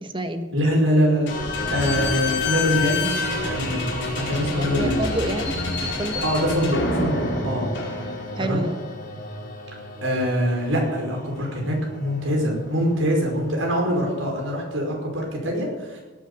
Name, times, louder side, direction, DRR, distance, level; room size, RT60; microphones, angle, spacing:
voice 1, 0.0-0.5 4.5-5.6 6.0-6.2 7.9-8.8, right 1 dB, 25° right, 8 dB, 1.2 m, -29 dB
voice 2, 0.5-3.2 3.4-5.0 6.2-7.7 8.4-8.6 10.0-16.0, equal, 85° right, 0 dB, 5.3 m, -24 dB
Slam / Squeak, 1.3-8.5, left 3 dB, 60° left, 4.8 m, -27 dB
sound 1, 1.3-14.5, left 1 dB, 45° left, 2.6 m, -35 dB
18.5 x 9.0 x 7.0 m, 1.2 s
head